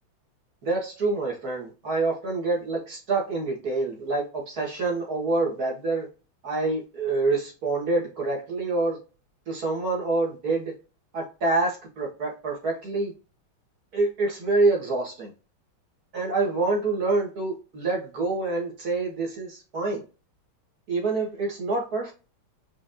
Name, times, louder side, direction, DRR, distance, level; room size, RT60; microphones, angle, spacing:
voice 1, 0.6-6.1 6.4-9.0 9.5-10.7 11.1-13.1 13.9-15.3 16.1-20.0 20.9-22.1, right 3 dB, 50° right, -1 dB, 1.9 m, -26 dB
5.0 x 3.7 x 2.6 m, 0.32 s
omnidirectional pair, 2.3 m